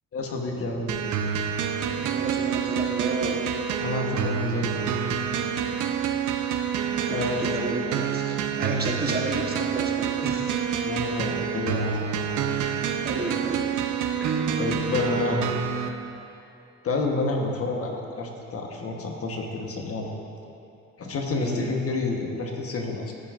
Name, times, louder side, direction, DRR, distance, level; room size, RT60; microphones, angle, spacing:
voice 1, 0.1-1.0 3.8-4.9 7.1-7.6 10.8-12.3 14.6-15.5 16.8-20.1 21.0-23.1, left 2 dB, 50° left, 1 dB, 1.1 m, -29 dB
sound 1, 0.9-15.9, right 7 dB, 80° right, 0.7 m, -27 dB
voice 2, 2.0-3.4 7.1-10.5 12.6-13.7 14.2-14.4 21.4-21.7, right 2 dB, 30° right, 0 dB, 1.1 m, -32 dB
14.5 x 6.0 x 2.5 m, 2.8 s
cardioid pair, 90°, 30 cm